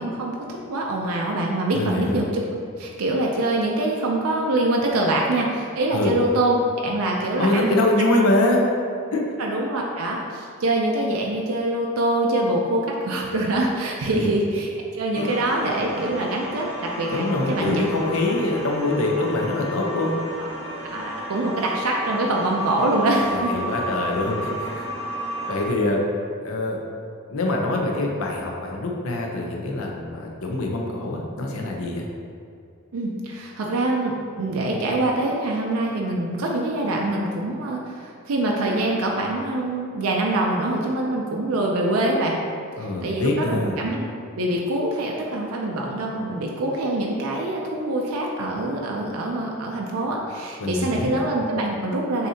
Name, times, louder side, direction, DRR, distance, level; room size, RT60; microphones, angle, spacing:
voice 1, 0.0-6.6 6.8-7.8 9.4-17.8 20.8-23.5 32.9-42.4 42.8-44.1 44.3-52.3, right 1 dB, 85° right, -1 dB, 0.5 m, -24 dB
voice 2, 1.7-2.2 5.9-6.2 7.4-8.6 9.1-9.2 14.1-14.3 15.2-15.3 17.1-20.2 23.3-24.9 25.5-26.0 26.4-26.8 27.3-32.1 42.8-43.7 50.6-51.2, left 2 dB, 85° left, 0 dB, 0.7 m, -24 dB
sound 1, 15.1-25.7, equal, 30° right, 0.7 m, -32 dB
6.5 x 2.7 x 2.7 m, 2.4 s
head